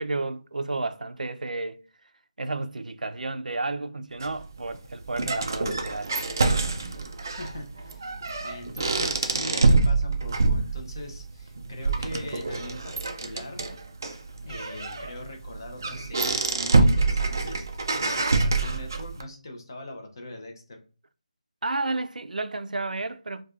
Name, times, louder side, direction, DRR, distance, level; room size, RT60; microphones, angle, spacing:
voice 1, 0.0-1.8 2.4-6.1 21.6-23.4, right 2 dB, 85° right, 0.5 m, -31 dB
sound 1, 4.2-19.2, right 3 dB, 25° right, 0.3 m, -26 dB
voice 2, 7.4-8.1 8.4-13.0 13.2-13.6 14.4-20.8, left 1 dB, 30° left, 0.7 m, -41 dB
4.6 x 2.3 x 2.4 m
figure-of-eight pair, 175°, 4 cm